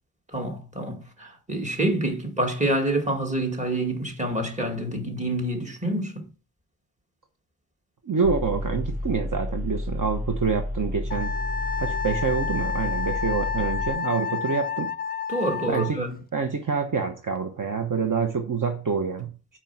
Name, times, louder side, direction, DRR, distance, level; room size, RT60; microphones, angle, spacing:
voice 1, 0.3-6.2 15.3-16.1, right 1 dB, 20° right, 2.2 m, -27 dB
voice 2, 8.1-11.3 11.8-14.9 15.7-16.0 16.3-19.3, right 5 dB, 55° right, 1.0 m, -26 dB
sound 1, 8.2-13.9, left 1 dB, 35° right, 3.4 m, -31 dB
Wind instrument woodwind instrument, 11.1-16.0, left 7 dB, 25° left, 0.4 m, -30 dB
9.1 x 4.4 x 6.0 m
wide cardioid pair, 130°, 39 cm